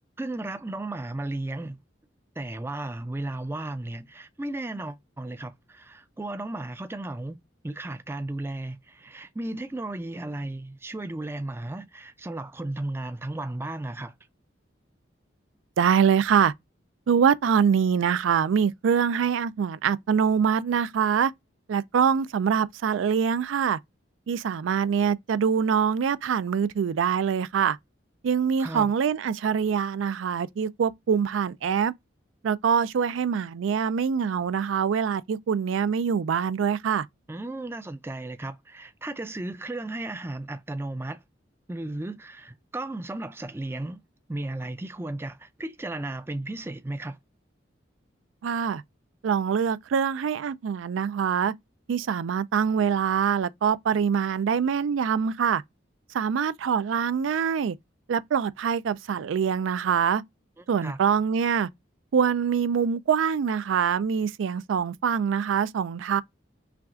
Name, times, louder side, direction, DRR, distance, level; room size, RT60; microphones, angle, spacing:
voice 1, 0.2-1.8 2.4-7.4 7.6-14.1 28.6-28.9 37.3-41.2 41.7-44.0 44.3-47.2 60.8-61.0, right 2 dB, 10° right, 0.3 m, -34 dB
voice 2, 15.8-16.5 17.1-21.3 21.7-23.8 24.3-27.8 28.2-31.9 32.4-37.1 48.4-48.8 49.2-51.5 51.9-55.6 56.1-57.8 58.1-60.2 60.7-61.7 62.1-66.2, right 7 dB, 90° right, 0.4 m, -24 dB
5.7 x 2.4 x 2.4 m
head